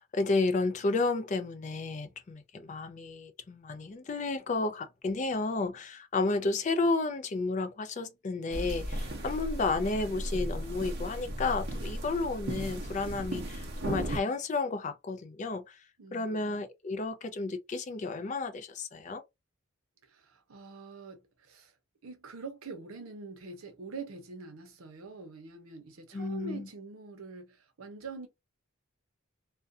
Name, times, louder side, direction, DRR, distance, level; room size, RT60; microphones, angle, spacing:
voice 1, 0.0-15.8 16.1-19.2 26.1-26.7, left 3 dB, 35° left, 0.3 m, -32 dB
sound 1, 8.5-14.2, equal, 50° right, 0.6 m, -36 dB
voice 2, 16.0-16.7 20.0-21.7 22.0-28.3, right 4 dB, 80° right, 0.7 m, -45 dB
2.4 x 2.1 x 2.5 m
head